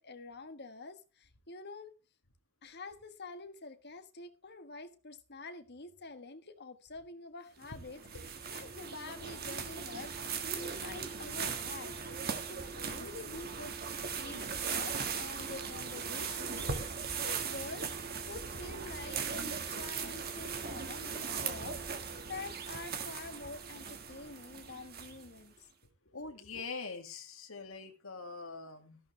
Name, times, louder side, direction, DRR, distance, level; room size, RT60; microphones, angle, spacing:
voice 1, 0.0-1.9 2.6-11.9 12.5-13.7 14.2-25.7 26.2-26.6, left 3 dB, 50° left, 8 dB, 1.3 m, -47 dB
sound 1, 7.6-25.4, right 6 dB, 45° right, 1.6 m, -39 dB
voice 2, 26.1-29.0, left 4 dB, 65° left, 4 dB, 2.2 m, -43 dB
13.5 x 11.5 x 3.3 m, 0.33 s
head